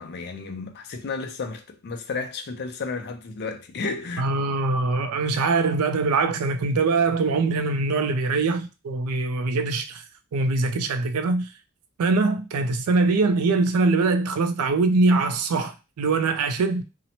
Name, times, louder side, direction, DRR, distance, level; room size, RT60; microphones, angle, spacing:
voice 1, 0.0-4.3, left 4 dB, 45° left, 0.4 m, -32 dB
voice 2, 4.2-10.0 10.3-11.5 12.0-16.8, right 3 dB, 85° right, 0.4 m, -23 dB
2.8 x 2.0 x 2.7 m
head